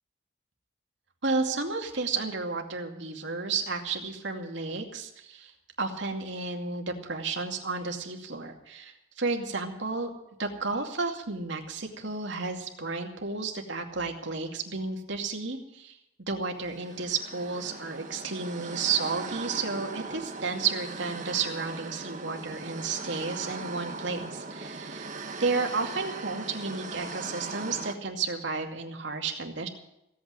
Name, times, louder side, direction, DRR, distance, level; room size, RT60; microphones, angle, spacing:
voice 1, 1.2-5.5 5.8-10.1 10.4-25.1 25.4-29.7, right 4 dB, 65° right, 2 dB, 2.4 m, -32 dB
sound 1, 16.7-27.9, right 3 dB, 40° right, 1.4 m, -39 dB
17.0 x 8.8 x 9.0 m, 0.83 s
head